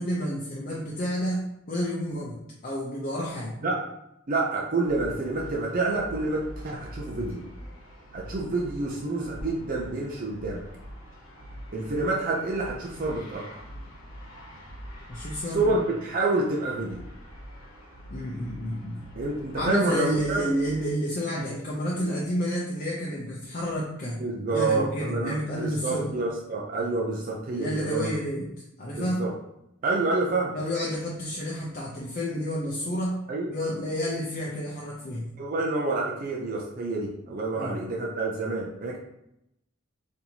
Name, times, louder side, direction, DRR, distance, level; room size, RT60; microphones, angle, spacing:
voice 1, 0.0-3.6 15.1-15.7 18.1-19.0 19.6-24.2 24.5-26.1 27.5-28.5 28.8-29.3 30.5-35.2 37.6-37.8, equal, 45° left, -5 dB, 0.6 m, -30 dB
voice 2, 4.3-7.4 8.1-10.6 11.7-13.4 15.5-17.0 19.2-20.5 24.0-28.1 28.9-29.3 29.8-30.6 33.3-33.5 35.4-39.0, right 3 dB, 45° right, -2 dB, 0.5 m, -28 dB
sound 1, 4.8-20.9, equal, 75° left, 1.1 m, -44 dB
4.2 x 2.8 x 2.8 m, 0.84 s
head